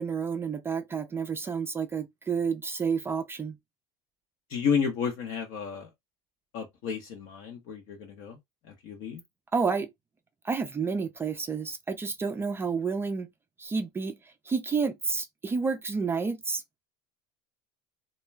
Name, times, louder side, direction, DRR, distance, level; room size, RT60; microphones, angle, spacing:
voice 1, 0.0-3.6 9.5-9.9 10.4-13.3 13.6-14.1 14.5-16.8, right 5 dB, 15° right, 0.3 m, -30 dB
voice 2, 4.5-5.9 6.5-8.4 8.8-9.2, left 6 dB, 60° left, 0.7 m, -31 dB
2.2 x 2.2 x 3.2 m
supercardioid pair, 120°, 14 cm